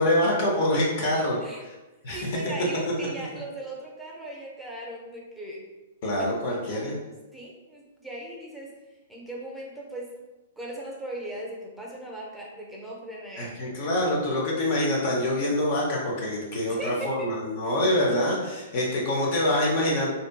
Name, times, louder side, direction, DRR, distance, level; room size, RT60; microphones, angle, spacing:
voice 1, 0.0-1.7 2.0-2.3 6.0-7.0 13.4-20.1, left 1 dB, 55° left, -3 dB, 0.7 m, -25 dB
voice 2, 2.1-5.6 6.0-6.3 6.7-8.7 9.1-10.1 10.6-13.7 16.8-17.3 17.6-17.7, right 1 dB, 5° right, -3 dB, 0.6 m, -38 dB
2.6 x 2.6 x 2.2 m, 1.1 s
hypercardioid pair, 125°, 0 cm